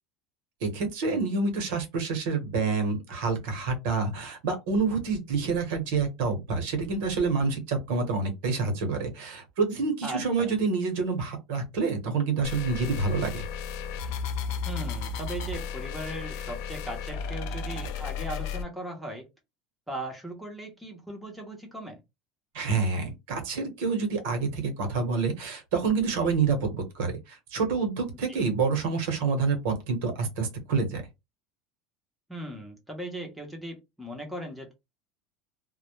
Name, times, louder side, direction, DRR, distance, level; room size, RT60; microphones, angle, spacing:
voice 1, 0.6-13.4 22.5-31.0, right 4 dB, 70° right, 0.9 m, -28 dB
voice 2, 10.0-10.5 14.7-19.3 19.9-22.0 28.3-28.4 32.3-34.7, right 1 dB, ahead, 0.6 m, -38 dB
sound 1, 12.4-18.6, left 5 dB, 60° left, 0.4 m, -34 dB
2.1 x 2.0 x 2.9 m
cardioid pair, 170°, 0 cm